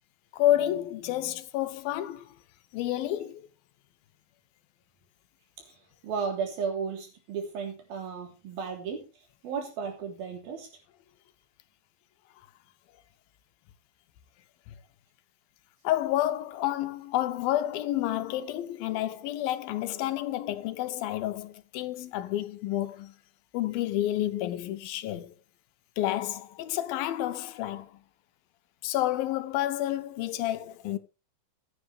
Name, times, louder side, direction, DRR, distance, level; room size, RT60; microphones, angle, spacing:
voice 1, 0.3-2.4 2.7-3.5 15.8-23.1 23.5-25.4 26.0-28.0 28.8-31.0, left 13 dB, 90° left, 2.7 m, -30 dB
voice 2, 5.6-9.1 9.4-10.7, right 6 dB, 90° right, 5.2 m, -34 dB
15.0 x 10.0 x 3.4 m
omnidirectional pair, 4.1 m